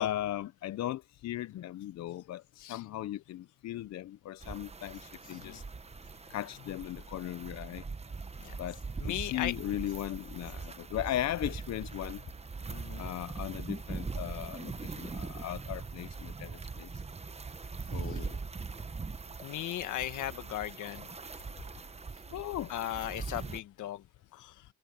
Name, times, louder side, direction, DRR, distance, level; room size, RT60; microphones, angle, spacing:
voice 1, 0.0-5.6 6.3-7.8 8.6-8.8 9.1-12.2 13.0-16.9 17.9-18.4 22.3-22.7, left 13 dB, 60° left, 0.6 m, -37 dB
sound 1, 4.4-23.6, right 4 dB, 20° right, 1.0 m, -41 dB
voice 2, 9.0-9.5 12.7-13.1 18.1-18.2 19.4-21.1 22.7-24.0 24.3-24.5, left 13 dB, 80° left, 1.6 m, -37 dB
cardioid pair, 90°, 30 cm